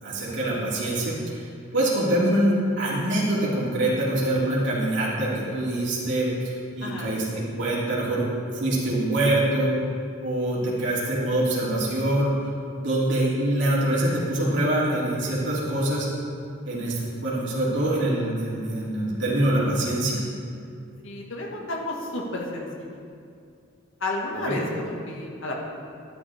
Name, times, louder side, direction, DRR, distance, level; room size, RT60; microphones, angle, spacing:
voice 1, 0.0-6.3 6.8-8.3 8.5-9.8 10.2-12.3 12.7-16.1 16.6-20.2 24.5-24.6, right 1 dB, 65° right, -7 dB, 3.3 m, -24 dB
voice 2, 6.8-7.1 21.0-22.7 24.0-25.7, left 2 dB, 80° left, -2 dB, 2.0 m, -31 dB
12.0 x 12.0 x 3.7 m, 2.4 s
head